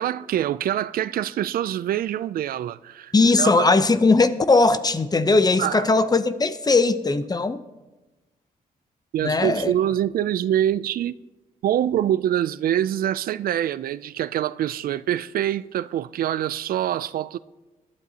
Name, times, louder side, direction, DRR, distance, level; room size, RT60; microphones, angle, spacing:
voice 1, 0.0-3.7 5.6-5.9 9.1-11.2 11.6-17.4, right 11 dB, 75° right, 0.4 m, -25 dB
voice 2, 3.1-7.6 9.2-9.7, left 3 dB, 25° left, 0.7 m, -19 dB
20.5 x 12.0 x 2.9 m
cardioid pair, 85°, 15 cm